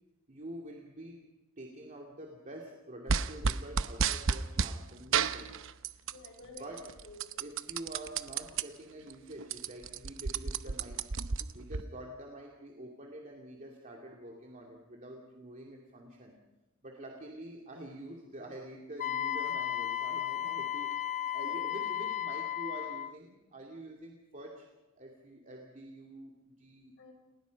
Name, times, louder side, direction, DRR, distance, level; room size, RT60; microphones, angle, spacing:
voice 1, 0.3-1.2 1.6-5.6 6.4-6.9 7.4-11.1 11.5-16.4 16.8-21.0 21.3-24.7 25.0-26.9, right 1 dB, 35° right, 0 dB, 2.7 m, -47 dB
sound 1, 3.1-4.8 5.1-6.3 6.6-8.6 9.1-9.2 9.4-11.8, right 5 dB, 65° right, 0.8 m, -31 dB
voice 2, 6.1-7.5 21.3-21.7 27.0-27.1, left 2 dB, 60° left, 3 dB, 6.2 m, -51 dB
Wind instrument woodwind instrument, 19.0-23.1, left 10 dB, 35° left, 0.7 m, -34 dB
29.5 x 20.0 x 5.3 m, 1.0 s
head